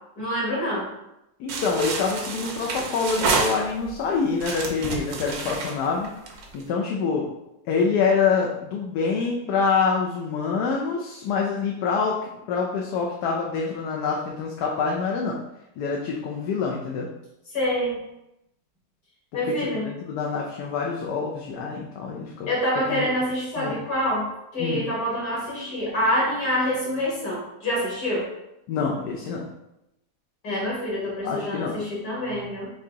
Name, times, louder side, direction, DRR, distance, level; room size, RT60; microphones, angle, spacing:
voice 1, 0.2-0.9 17.5-18.0 19.3-19.9 22.5-24.3 24.5-28.3 30.4-32.7, equal, 65° left, -6 dB, 2.1 m, -26 dB
voice 2, 1.4-6.1 6.5-7.3 7.7-12.2 12.5-15.4 15.8-17.1 19.4-22.5 22.9-23.0 23.6-23.8 24.6-24.9 28.7-29.5 31.2-31.8, left 5 dB, 80° left, -1 dB, 1.2 m, -26 dB
sound 1, 1.5-4.0 4.4-6.6, right 3 dB, 70° right, 1.2 m, -28 dB
4.7 x 2.8 x 3.5 m, 0.87 s
omnidirectional pair, 1.7 m